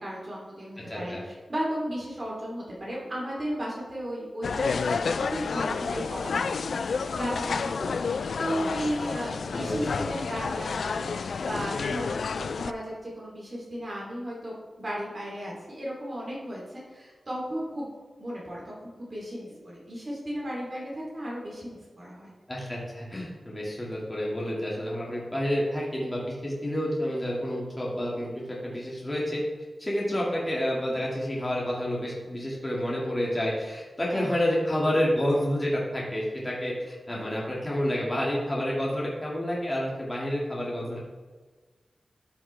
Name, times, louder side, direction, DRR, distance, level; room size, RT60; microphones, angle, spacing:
voice 1, 0.0-12.1 12.4-17.9 18.2-22.3 29.9-30.2 34.1-34.2, equal, 40° right, -5 dB, 2.8 m, -35 dB
voice 2, 0.9-1.2 9.5-10.0 22.5-29.4 29.8-41.0, equal, 20° left, -5 dB, 1.9 m, -29 dB
sound 1, 4.4-12.7, left 5 dB, 90° left, 0.3 m, -30 dB
12.5 x 5.7 x 3.3 m, 1.4 s
wide cardioid pair, 125°, 0 cm